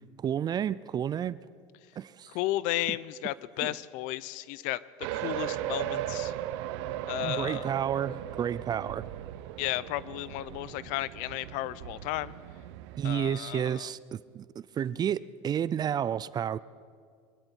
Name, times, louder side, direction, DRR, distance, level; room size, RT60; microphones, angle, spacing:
voice 1, 0.2-1.4 2.0-2.3 3.6-3.7 7.2-9.0 13.0-16.6, right 9 dB, 30° right, 19 dB, 0.3 m, -31 dB
voice 2, 2.3-4.8 5.1-6.3 7.1-7.7 9.6-12.3 13.0-13.9, left 16 dB, 65° left, 19 dB, 0.5 m, -33 dB
sound 1, 5.0-13.4, right 12 dB, 80° right, 0.7 m, -37 dB
23.5 x 13.5 x 4.5 m, 2.1 s
supercardioid pair, 115°, 14 cm